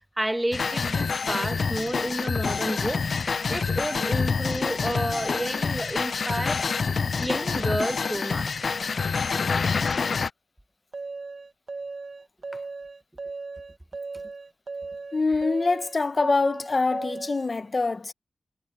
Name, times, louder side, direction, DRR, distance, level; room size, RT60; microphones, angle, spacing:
voice 1, 0.2-3.0 3.5-6.7 7.2-8.7, right 1 dB, 10° right, 1.5 m, -30 dB
sound 1, 0.5-10.3, left 5 dB, 60° left, 0.3 m, -27 dB
sound 2, 10.9-17.5, right 3 dB, 50° right, 1.1 m, -37 dB
voice 2, 15.1-18.1, left 3 dB, 40° left, 0.9 m, -24 dB
wide cardioid pair, 110°, 0 cm